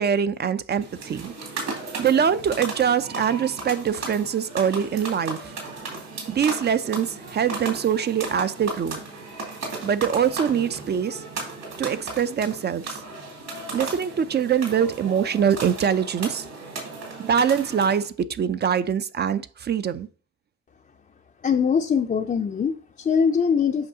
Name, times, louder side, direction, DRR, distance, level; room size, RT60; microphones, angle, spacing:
voice 1, 0.0-1.3 2.0-5.5 6.3-9.0 9.8-11.2 11.8-13.0 13.7-16.5 17.2-20.1, right 8 dB, 35° right, 0.4 m, -23 dB
sound 1, 0.8-18.1, right 3 dB, 65° right, 2.6 m, -35 dB
voice 2, 21.4-23.9, left 6 dB, 30° left, 0.4 m, -22 dB
7.7 x 5.4 x 2.7 m
cardioid pair, 90°, 30 cm